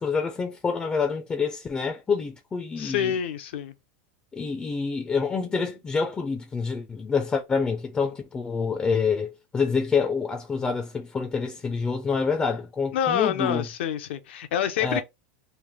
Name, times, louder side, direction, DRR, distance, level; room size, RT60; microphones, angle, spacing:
voice 1, 0.0-3.1 4.3-13.7 14.8-15.0, left 5 dB, 15° left, 0.5 m, -27 dB
voice 2, 2.8-3.7 12.9-15.0, left 9 dB, 80° left, 0.7 m, -27 dB
3.3 x 2.5 x 3.5 m
supercardioid pair, 150°, 6 cm